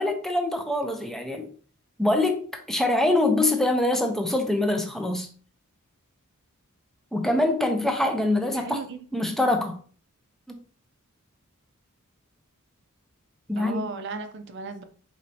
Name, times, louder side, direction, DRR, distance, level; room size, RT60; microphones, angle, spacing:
voice 1, 0.0-1.5 2.0-5.3 7.1-8.8 9.1-9.8 10.5-10.6 13.5-13.8, left 2 dB, ahead, 0.4 m, -24 dB
voice 2, 8.5-9.3 13.6-14.8, right 4 dB, 55° right, 0.5 m, -36 dB
4.3 x 3.1 x 2.7 m
head